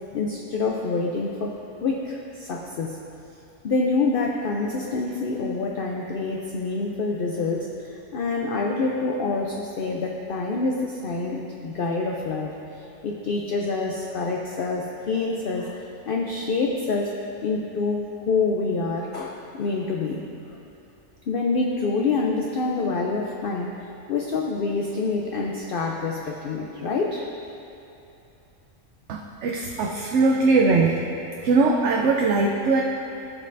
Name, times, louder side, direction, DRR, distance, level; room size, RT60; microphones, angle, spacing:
voice 1, 0.1-1.6 1.8-3.0 3.6-17.1 17.4-20.2 21.3-27.3, left 3 dB, 60° left, 0 dB, 0.6 m, -27 dB
voice 2, 29.1-31.0 31.4-32.8, right 3 dB, 65° right, 0 dB, 0.8 m, -20 dB
15.5 x 5.4 x 2.6 m, 2.8 s
omnidirectional pair, 1.4 m